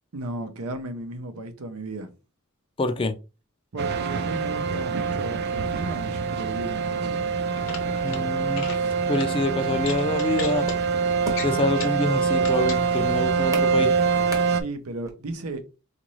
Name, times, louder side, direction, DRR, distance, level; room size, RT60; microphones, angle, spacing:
voice 1, 0.1-2.1 3.7-7.2 14.5-15.6, right 2 dB, 85° right, 0.7 m, -35 dB
voice 2, 2.8-3.1 8.0-8.6 9.1-10.7 11.4-13.9, left 2 dB, 25° left, 0.4 m, -26 dB
sound 1, 3.8-14.6, right 5 dB, 50° right, 0.4 m, -25 dB
sound 2, 7.6-8.2 8.5-8.8 9.1-9.3 9.8-10.8 11.3-12.0 12.4-12.8, left 6 dB, 60° left, 0.7 m, -36 dB
sound 3, 10.6-15.1, equal, 15° right, 0.8 m, -39 dB
3.9 x 2.5 x 3.0 m
head